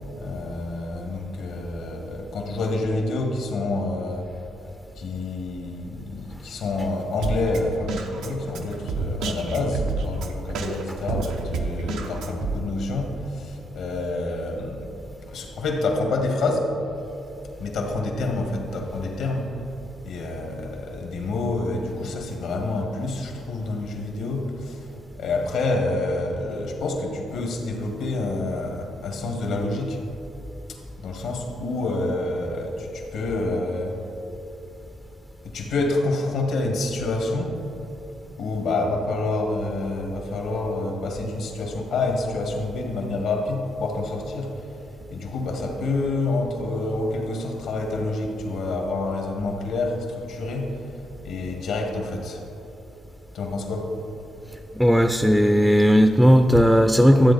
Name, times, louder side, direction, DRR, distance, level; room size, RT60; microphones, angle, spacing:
voice 1, 0.2-4.3 5.0-15.0 15.3-16.7 17.6-19.5 20.0-24.9 25.2-30.0 30.7-34.0 35.4-37.6 38.4-44.7 45.1-50.8 51.2-52.5 53.3-53.9, left 2 dB, 75° left, 2 dB, 1.8 m, -28 dB
Drum kit, 7.2-12.6, right 3 dB, 90° right, 0.8 m, -29 dB
voice 2, 54.7-57.3, equal, ahead, 7 dB, 0.5 m, -16 dB
12.5 x 8.3 x 4.1 m, 2.9 s
cardioid pair, 90°, 0 cm